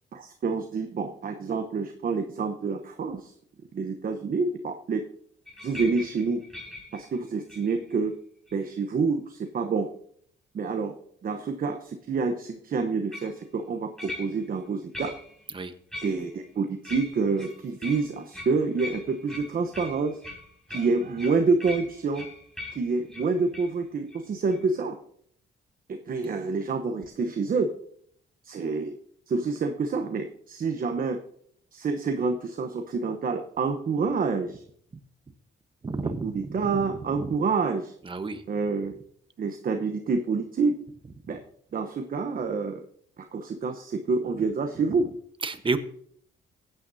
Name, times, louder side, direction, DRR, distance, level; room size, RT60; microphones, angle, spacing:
voice 1, 0.1-3.3 3.7-5.0 5.6-6.4 6.9-8.1 8.5-9.9 10.5-10.9 11.2-15.1 16.0-20.2 20.7-22.3 22.7-25.0 25.9-27.7 28.4-29.0 29.3-31.2 31.7-34.6 36.2-37.9 38.5-38.9 39.4-40.8 41.3-41.4 41.7-42.8 43.2-45.1, right 4 dB, 45° right, 6 dB, 1.0 m, -27 dB
sound 1, 5.5-7.9 8.5-8.9 13.1-13.4 14.0-14.6 14.9-15.4 15.9-16.5 16.8-23.7 24.1-24.2 24.5-24.7, left 2 dB, 5° left, 5.0 m, -41 dB
voice 2, 35.8-37.3 38.0-38.4 45.4-45.8, right 3 dB, 25° right, 9 dB, 1.1 m, -31 dB
16.5 x 9.0 x 2.7 m, 0.62 s
cardioid pair, 90°, 20 cm